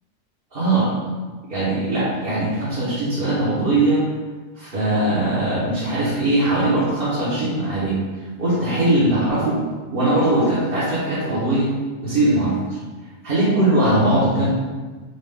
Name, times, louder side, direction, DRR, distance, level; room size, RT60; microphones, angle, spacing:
voice 1, 0.5-0.9 1.5-4.1 4.5-8.0 8.4-9.6 9.9-11.7 12.0-12.8 13.2-14.5, right 1 dB, 45° right, -10 dB, 1.3 m, -20 dB
5.4 x 2.4 x 3.7 m, 1.4 s
omnidirectional pair, 1.4 m